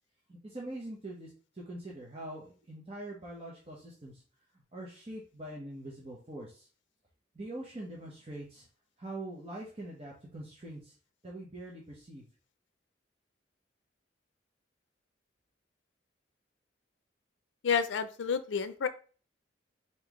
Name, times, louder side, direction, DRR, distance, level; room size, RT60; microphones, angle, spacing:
voice 1, 0.3-4.2 4.5-6.7 7.3-8.7 9.0-10.9 11.2-12.3, right 1 dB, 35° right, -4 dB, 1.0 m, -43 dB
voice 2, 17.6-18.9, left 6 dB, 90° left, 12 dB, 0.4 m, -30 dB
4.2 x 4.0 x 3.1 m, 0.38 s
head